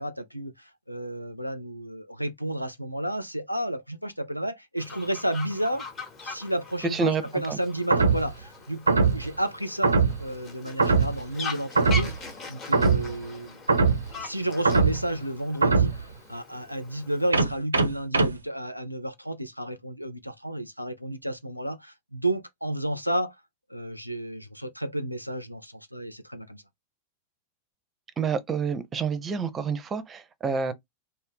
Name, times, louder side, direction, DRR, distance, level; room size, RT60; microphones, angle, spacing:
voice 1, 0.0-5.9 6.2-12.1 12.5-13.6 14.2-23.4 23.7-26.6, right 1 dB, 90° left, 0.4 m, -31 dB
Fowl, 4.8-17.3, left 4 dB, 30° left, 1.0 m, -41 dB
voice 2, 6.8-7.2 7.5-7.6 28.2-30.7, right 5 dB, 20° right, 0.5 m, -28 dB
sound 1, 7.9-8.3 8.9-9.3 9.8-10.3 10.8-11.2 11.8-12.2 12.7-13.1 13.7-14.1 14.6-15.1 15.6-16.0 17.3-18.3, right 4 dB, 75° right, 0.4 m, -21 dB
2.6 x 2.0 x 3.5 m
figure-of-eight pair, 90°, 0 cm